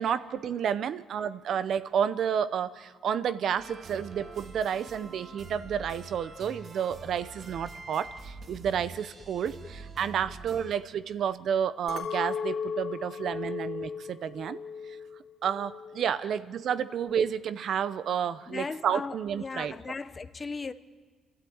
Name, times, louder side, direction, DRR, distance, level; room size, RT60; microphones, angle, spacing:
voice 1, 0.0-14.6 15.4-19.7, right 8 dB, 65° right, 0.7 m, -30 dB
sound 1, 3.6-10.7, right 3 dB, 50° right, 1.9 m, -45 dB
voice 2, 6.3-6.7 8.1-8.2 9.5-9.7 10.2-10.3 12.4-12.5 13.5-13.6 16.2-16.3 18.5-20.7, left 4 dB, 30° left, 0.9 m, -39 dB
Chink clink, 11.9-16.3 16.6-17.2, left 6 dB, 75° left, 2.8 m, -37 dB
27.5 x 12.5 x 8.7 m
cardioid pair, 90°, 0 cm